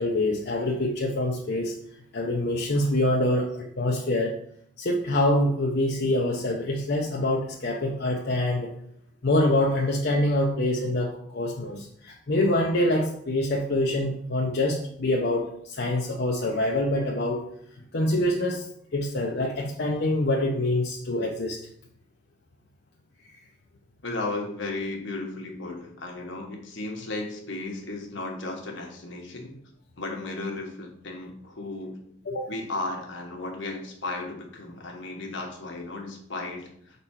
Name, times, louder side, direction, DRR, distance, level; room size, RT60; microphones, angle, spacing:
voice 1, 0.0-1.8 2.1-4.4 4.8-8.7 9.2-17.5 17.9-21.6 32.3-32.5, left 1 dB, 55° left, -1 dB, 0.6 m, -25 dB
voice 2, 24.0-29.6 30.0-32.0 32.5-37.0, left 2 dB, 75° left, 1 dB, 1.3 m, -35 dB
4.4 x 4.1 x 5.7 m, 0.69 s
head